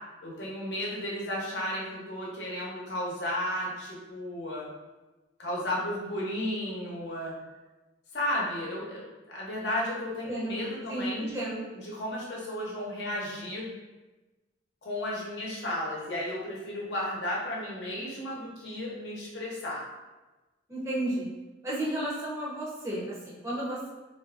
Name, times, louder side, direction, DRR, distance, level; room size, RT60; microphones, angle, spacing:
voice 1, 0.2-4.7 5.4-7.3 8.1-11.3 11.7-13.6 14.8-19.8, left 1 dB, 65° left, -4 dB, 0.9 m, -33 dB
voice 2, 10.3-11.7 20.7-21.3 21.6-23.9, right 1 dB, 15° right, -7 dB, 0.8 m, -33 dB
3.5 x 2.6 x 2.4 m, 1.1 s
head